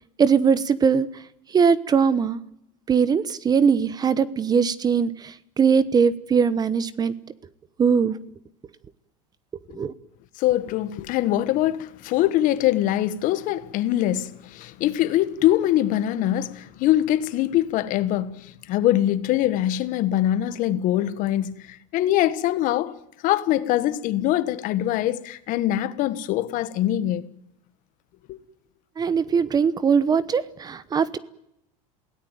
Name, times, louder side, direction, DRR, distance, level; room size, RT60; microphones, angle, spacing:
voice 1, 0.2-1.1 1.5-2.4 2.9-7.1 7.8-8.2 9.7-9.9 29.0-31.2, right 6 dB, 20° right, 1.0 m, -21 dB
voice 2, 10.4-23.0 23.2-27.3 28.3-28.4, left 13 dB, 50° left, 1.5 m, -23 dB
27.5 x 17.5 x 9.2 m
supercardioid pair, 135°, 17 cm